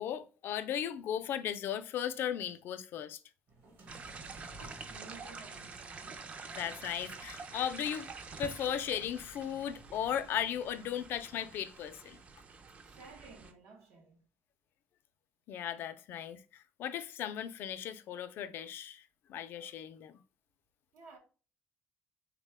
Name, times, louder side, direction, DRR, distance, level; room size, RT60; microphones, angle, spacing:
voice 1, 0.0-3.2 6.6-8.1 8.4-12.2 15.5-19.0 19.3-20.1, left 9 dB, 60° left, 0.3 m, -36 dB
sound 1, 3.5-10.1, right 1 dB, 55° right, 0.9 m, -57 dB
sound 2, 3.9-13.5, right 4 dB, 30° right, 0.4 m, -48 dB
voice 2, 4.9-6.3 12.8-14.2 20.9-21.2, right 4 dB, 85° right, 0.7 m, -54 dB
3.5 x 2.1 x 3.2 m
cardioid pair, 160°, 4 cm